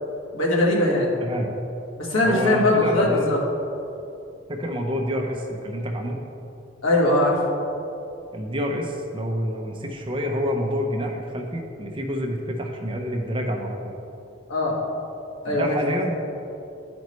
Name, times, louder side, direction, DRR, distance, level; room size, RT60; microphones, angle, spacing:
voice 1, 0.3-1.2 2.0-3.4 6.8-7.4 14.5-14.8 15.4-15.8, left 1 dB, 80° left, -4 dB, 1.6 m, -20 dB
voice 2, 1.2-1.5 2.2-3.3 4.5-6.2 8.3-13.9 15.5-16.2, equal, 25° right, 2 dB, 0.6 m, -28 dB
12.0 x 5.2 x 3.1 m, 2.8 s
head